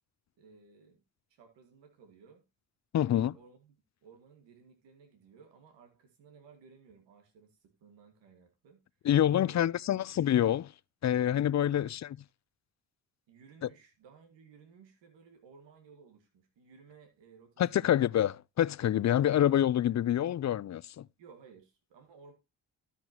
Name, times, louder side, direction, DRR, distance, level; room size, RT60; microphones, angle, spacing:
voice 1, 0.4-1.0 1.3-2.4 3.0-3.7 4.0-8.8 9.3-10.0 11.6-11.9 13.3-18.0 21.2-22.3, right 5 dB, 90° right, 2.0 m, -57 dB
voice 2, 2.9-3.3 9.0-10.7 11.0-11.9 17.6-21.0, left 11 dB, 40° left, 0.5 m, -26 dB
12.5 x 5.9 x 2.9 m
supercardioid pair, 60°, 43 cm